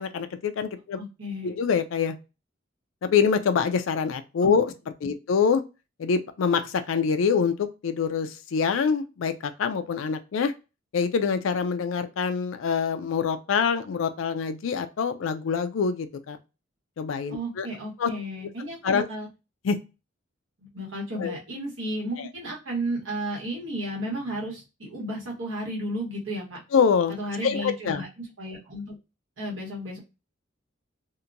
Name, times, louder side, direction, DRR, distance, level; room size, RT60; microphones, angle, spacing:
voice 1, 0.0-1.0 1.4-2.2 3.0-4.7 5.0-5.6 6.0-10.5 10.9-16.4 17.0-17.7 18.0-18.1 18.8-19.1 19.6-19.8 21.2-21.4 22.2-22.3 26.7-27.2 27.4-28.0, left 6 dB, 85° left, 9 dB, 0.4 m, -25 dB
voice 2, 1.0-1.5 17.3-19.3 20.6-26.6 27.1-29.0 29.4-30.0, right 1 dB, 80° right, -3 dB, 1.2 m, -33 dB
2.8 x 2.2 x 2.5 m, 0.29 s
head